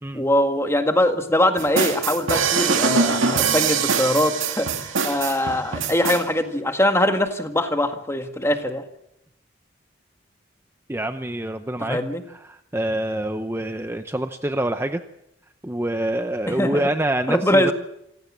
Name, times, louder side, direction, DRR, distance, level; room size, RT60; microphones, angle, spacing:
voice 1, 0.1-8.8 11.9-12.2 16.5-16.8 17.3-17.7, left 1 dB, 15° left, 6 dB, 1.8 m, -22 dB
sound 1, 1.6-6.2, right 5 dB, 85° right, 2.2 m, -23 dB
voice 2, 10.9-12.0 12.3-15.0 15.6-17.7, right 1 dB, 15° right, 8 dB, 0.7 m, -26 dB
27.0 x 16.0 x 7.4 m, 0.83 s
head